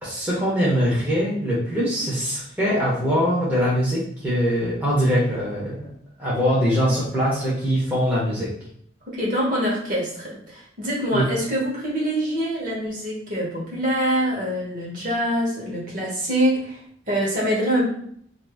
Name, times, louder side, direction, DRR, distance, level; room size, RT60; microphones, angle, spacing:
voice 1, 0.0-5.9 6.2-8.5 11.1-11.2, equal, 10° right, -8 dB, 0.8 m, -22 dB
voice 2, 9.1-17.9, equal, 45° right, -5 dB, 1.2 m, -25 dB
2.6 x 2.6 x 3.5 m, 0.64 s
head